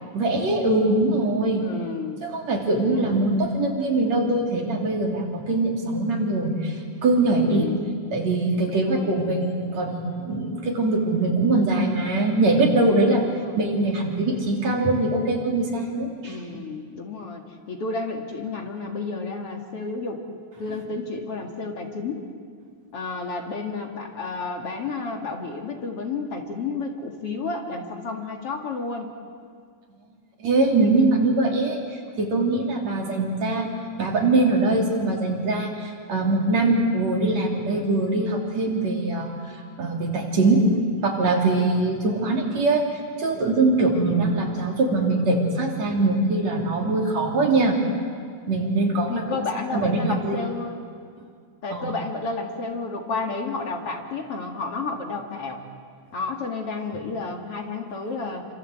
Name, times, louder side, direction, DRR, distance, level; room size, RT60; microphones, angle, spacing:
voice 1, 0.1-1.6 2.2-7.7 8.1-13.2 13.6-16.6 30.4-31.8 32.2-33.7 34.0-39.3 39.8-40.6 41.0-42.8 43.2-47.8 48.5-49.2 49.7-50.4 51.7-51.9, right 2 dB, 65° right, 0 dB, 4.5 m, -22 dB
voice 2, 1.6-2.2 2.8-3.3 7.4-7.8 8.7-9.1 13.2-13.6 16.2-20.2 20.6-22.2 22.9-29.1 43.9-44.3 49.1-50.9 51.6-55.6 56.1-58.5, left 3 dB, 50° left, 2 dB, 2.9 m, -31 dB
27.5 x 26.0 x 8.0 m, 2.1 s
omnidirectional pair, 3.4 m